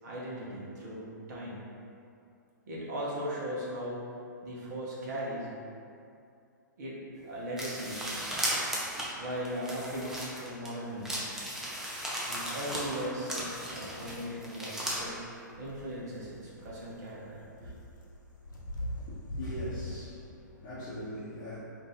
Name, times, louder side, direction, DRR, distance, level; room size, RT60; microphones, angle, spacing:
voice 1, 0.0-1.6 2.7-4.1 4.4-5.5 6.8-7.0 7.2-8.1 9.2-11.3 12.3-15.2 15.6-17.7, equal, 60° right, -6 dB, 0.8 m, -38 dB
sound 1, 7.6-10.7 11.1-15.0, equal, 5° right, 0.4 m, -36 dB
sound 2, 15.0-15.2 15.5-20.0, left 1 dB, 75° left, 0.6 m, -41 dB
voice 2, 19.1-21.6, equal, 35° left, -11 dB, 0.7 m, -41 dB
2.6 x 2.5 x 3.9 m, 2.5 s
hypercardioid pair, 120°, 10 cm